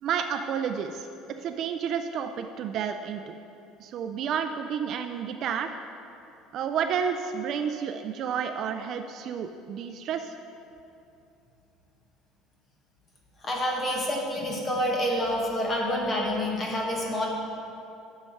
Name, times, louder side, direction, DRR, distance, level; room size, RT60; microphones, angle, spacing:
voice 1, 0.0-3.4 3.8-5.7 6.5-10.4, right 7 dB, 40° right, 7 dB, 0.3 m, -31 dB
voice 2, 13.4-17.3, equal, 20° left, -1 dB, 1.2 m, -28 dB
7.7 x 6.4 x 5.6 m, 2.8 s
cardioid pair, 175°, 0 cm